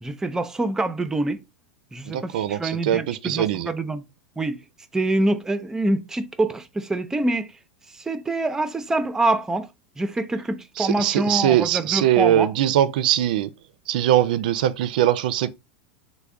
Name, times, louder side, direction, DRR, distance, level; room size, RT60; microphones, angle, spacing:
voice 1, 0.0-1.4 1.9-4.0 4.4-4.6 4.9-7.5 7.9-9.7 10.0-12.5, right 2 dB, 10° right, 0.5 m, -25 dB
voice 2, 2.1-3.7 10.8-13.5 13.9-15.5, right 12 dB, 75° right, 0.3 m, -21 dB
3.3 x 2.1 x 3.6 m
hypercardioid pair, 110°, 5 cm